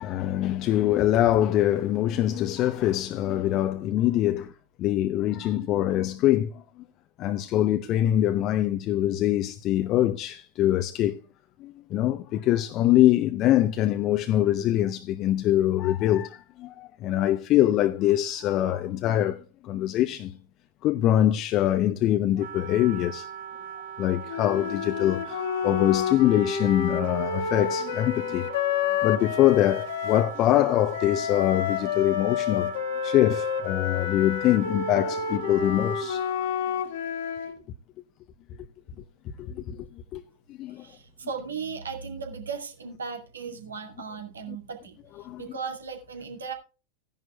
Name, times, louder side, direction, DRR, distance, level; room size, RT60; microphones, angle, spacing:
voice 1, 0.0-4.5 4.8-6.6 7.2-11.2 11.6-20.3 20.8-23.3 24.0-28.5 29.0-32.7 33.0-36.2 39.4-39.8 40.1-40.2 40.6-40.8 45.2-45.4, left 13 dB, 35° left, 0.7 m, -24 dB
Wind instrument woodwind instrument, 22.4-36.5, right 9 dB, 55° right, 1.8 m, -40 dB
sound 1, 24.3-30.3 30.9-37.6, left 7 dB, 55° left, 1.6 m, -29 dB
voice 2, 40.8-46.5, right 5 dB, 70° right, 2.2 m, -37 dB
16.0 x 10.5 x 2.3 m
figure-of-eight pair, 90°, 0 cm